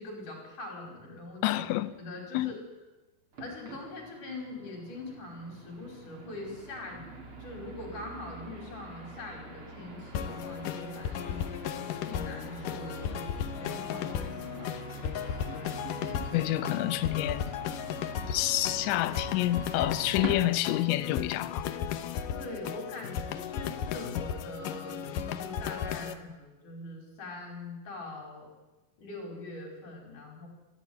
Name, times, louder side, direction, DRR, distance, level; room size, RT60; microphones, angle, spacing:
voice 1, 0.0-1.6 2.0-2.6 3.4-14.7 18.7-19.0 22.3-28.5 29.0-30.5, left 2 dB, 45° left, 6.3 m, -43 dB
voice 2, 1.4-1.9 2.3-2.5 16.3-17.5 18.3-21.7, left 15 dB, 90° left, 3.2 m, -28 dB
sound 1, 3.3-20.9, right 3 dB, 30° right, 3.5 m, -45 dB
sound 2, 10.1-26.1, left 8 dB, 75° left, 2.0 m, -35 dB
24.0 x 14.0 x 9.6 m
omnidirectional pair, 5.1 m